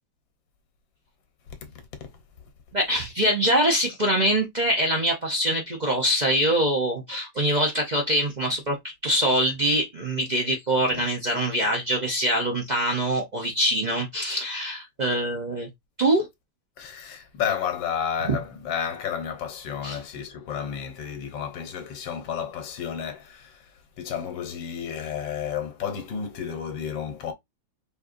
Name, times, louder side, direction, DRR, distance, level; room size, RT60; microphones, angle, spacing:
voice 1, 2.7-8.8 9.0-15.7 16.0-16.3 18.2-18.4 19.8-20.0, right 1 dB, 60° right, 0.4 m, -24 dB
voice 2, 16.8-23.5 24.0-27.3, left 8 dB, 85° left, 1.6 m, -31 dB
4.5 x 3.0 x 2.5 m
omnidirectional pair, 2.0 m